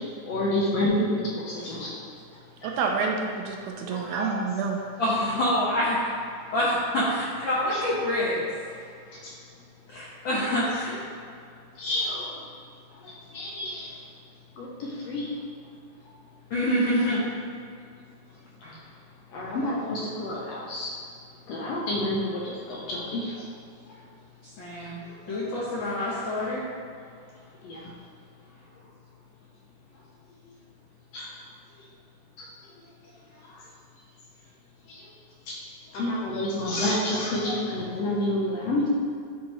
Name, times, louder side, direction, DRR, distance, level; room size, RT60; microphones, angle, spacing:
voice 1, 0.2-0.9 1.2-1.9 2.6-2.7 3.9-4.4 7.7-7.8 9.2-9.3 10.5-10.6 11.8-12.3 13.0-13.9 14.6-14.7 15.0-15.3 19.3-20.9 21.5-23.5 25.3-25.4 27.6-27.8 31.1-31.3 32.4-32.5 34.9-35.0 35.5-35.6 35.9-38.9, left 1 dB, 70° left, -5 dB, 1.6 m, -29 dB
voice 2, 2.6-4.8, right 5 dB, 80° right, 1 dB, 2.1 m, -28 dB
voice 3, 5.0-6.0 6.5-8.4 9.9-10.9 16.5-17.2 18.6-18.7 24.4-25.0 25.3-26.7, left 1 dB, 90° left, -7 dB, 1.0 m, -26 dB
9.8 x 3.7 x 3.0 m, 2.3 s
omnidirectional pair, 3.6 m